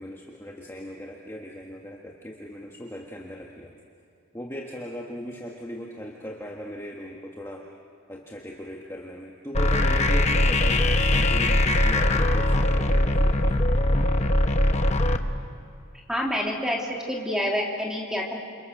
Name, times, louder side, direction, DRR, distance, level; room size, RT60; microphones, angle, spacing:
voice 1, 0.0-3.7 4.3-7.7 8.1-13.5, equal, 10° left, -1 dB, 1.6 m, -38 dB
sound 1, 9.5-15.2, left 1 dB, 30° left, 1.1 m, -21 dB
voice 2, 16.1-18.4, equal, 5° right, -2 dB, 3.3 m, -27 dB
29.0 x 27.5 x 6.6 m, 2.5 s
head